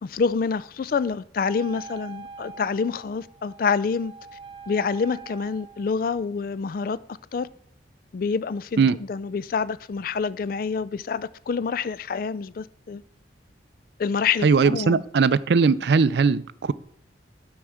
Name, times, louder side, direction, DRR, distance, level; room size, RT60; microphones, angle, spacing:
voice 1, 0.0-4.1 4.7-7.0 7.3-7.5 8.1-13.0 14.0-15.0, left 5 dB, 50° left, 0.3 m, -27 dB
Wind instrument woodwind instrument, 1.4-5.9, right 5 dB, 30° right, 0.8 m, -43 dB
voice 2, 14.4-16.7, right 5 dB, 65° right, 0.4 m, -19 dB
9.0 x 4.6 x 6.3 m
head